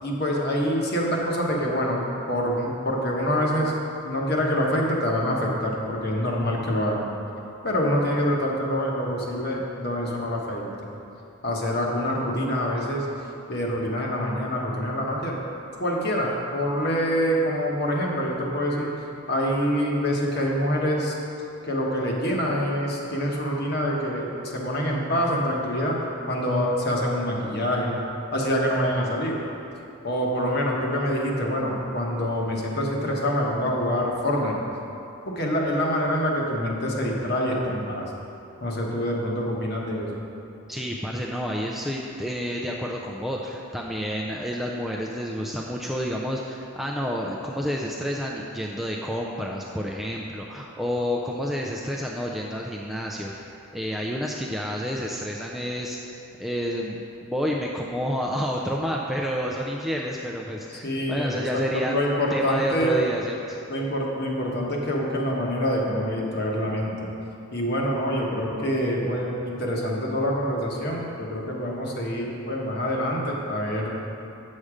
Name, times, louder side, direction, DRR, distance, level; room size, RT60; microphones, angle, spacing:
voice 1, 0.0-3.7 4.0-7.0 7.6-10.7 11.4-13.1 13.5-15.4 15.8-18.9 19.3-21.2 21.7-26.0 26.3-28.0 28.3-29.4 30.0-34.6 35.3-38.1 38.6-40.2 60.7-63.0 63.7-67.1 67.5-73.9, equal, 50° left, -2 dB, 1.2 m, -26 dB
voice 2, 40.7-53.5 53.7-62.0 62.3-63.6, equal, ahead, -2 dB, 0.3 m, -29 dB
8.5 x 6.5 x 4.9 m, 2.8 s
head